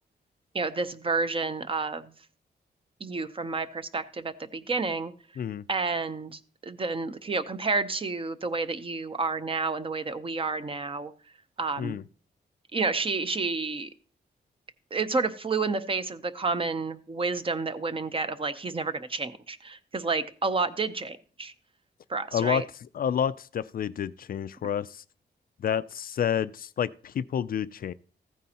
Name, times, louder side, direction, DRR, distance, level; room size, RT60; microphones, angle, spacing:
voice 1, 0.5-2.1 3.0-5.1 5.7-11.1 11.6-12.0 12.7-13.9 14.9-21.5 22.1-22.6, right 4 dB, 30° right, 0.7 m, -30 dB
voice 2, 22.3-22.6 22.9-25.0 25.6-27.9, left 8 dB, 55° left, 0.4 m, -29 dB
14.5 x 9.2 x 2.9 m
wide cardioid pair, 120°, 18 cm